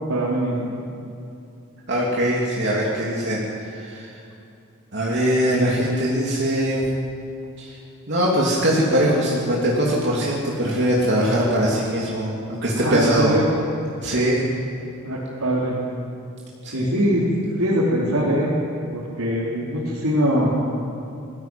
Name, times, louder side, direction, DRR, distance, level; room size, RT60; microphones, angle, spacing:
voice 1, 0.1-0.7 12.7-13.4 15.0-15.7 16.7-17.3 17.6-18.5 18.9-20.5, equal, 85° right, -7 dB, 4.0 m, -22 dB
voice 2, 1.9-4.1 4.9-6.8 7.6-7.8 8.1-13.4 14.0-14.4 16.6-16.9, equal, 50° right, -4 dB, 3.0 m, -21 dB
22.0 x 15.0 x 9.3 m, 2.7 s
head